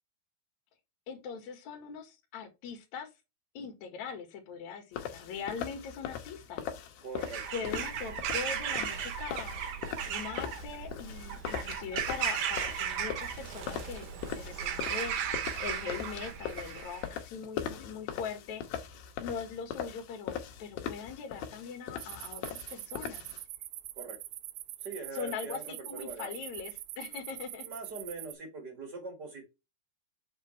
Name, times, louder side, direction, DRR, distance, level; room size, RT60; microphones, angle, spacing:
voice 1, 1.1-3.1 3.5-6.6 7.5-18.9 19.2-23.3 25.1-27.7, left 6 dB, 55° left, 2.5 m, -41 dB
sound 1, 4.9-23.4, left 9 dB, 70° left, 2.6 m, -41 dB
voice 2, 7.0-7.5 7.7-7.8 23.9-24.2 24.8-26.3 27.6-29.4, right 3 dB, 35° right, 1.6 m, -42 dB
Bird vocalization bird call bird song / Crow, 7.2-17.1, right 8 dB, 65° right, 2.2 m, -36 dB
sound 2, 22.0-28.3, right 17 dB, 90° right, 2.8 m, -44 dB
7.7 x 5.0 x 3.3 m
omnidirectional pair, 4.9 m